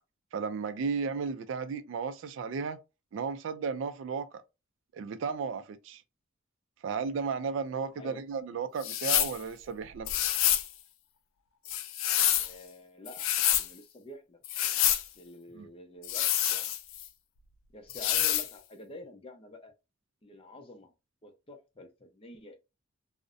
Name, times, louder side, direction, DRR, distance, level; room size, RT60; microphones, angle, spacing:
voice 1, 0.3-2.8 3.1-4.4 4.9-6.0 6.8-10.1 15.5-15.7, right 5 dB, 65° right, 0.3 m, -34 dB
sound 1, 8.8-9.4 10.1-10.7 11.7-12.5 13.1-13.7 14.4-15.0 16.0-17.1 17.9-18.5, left 11 dB, 80° left, 0.3 m, -27 dB
voice 2, 12.4-14.4 15.2-16.7 17.7-19.7 20.2-20.9 21.2-22.6, left 1 dB, 30° left, 0.5 m, -48 dB
2.6 x 2.0 x 2.4 m
head